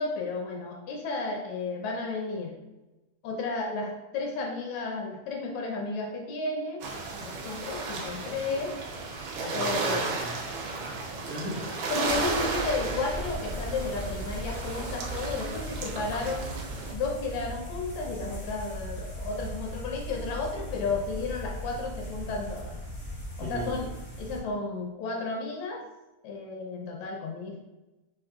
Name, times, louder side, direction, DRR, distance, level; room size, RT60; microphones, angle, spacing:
voice 1, 0.0-2.6 3.2-6.9 7.2-8.8 9.5-10.1 11.9-16.5 16.9-22.8 23.4-23.9 24.2-25.8 26.2-27.6, left 3 dB, 80° left, 1 dB, 1.7 m, -33 dB
sound 1, 6.8-16.9, right 3 dB, 90° right, 2.0 m, -34 dB
voice 2, 9.3-10.4 10.7-11.9 23.4-23.9, equal, 75° right, -6 dB, 1.4 m, -39 dB
sound 2, 12.0-24.4, equal, 60° left, 0.5 m, -38 dB
5.3 x 2.3 x 2.5 m, 1.0 s
omnidirectional pair, 3.4 m